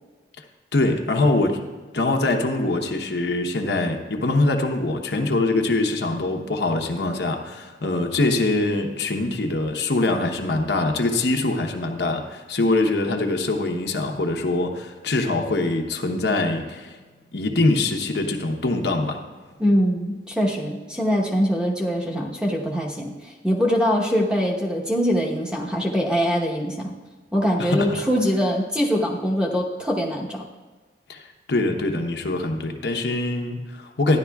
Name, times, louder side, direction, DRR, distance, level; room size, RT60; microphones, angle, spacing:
voice 1, 0.7-1.6 1.9-17.0 17.3-19.2 27.6-28.0 31.1-34.2, left 2 dB, 80° left, 3 dB, 1.0 m, -23 dB
voice 2, 19.6-26.9 27.3-30.5, equal, 5° right, -2 dB, 1.0 m, -23 dB
13.5 x 10.5 x 2.3 m, 1.3 s
head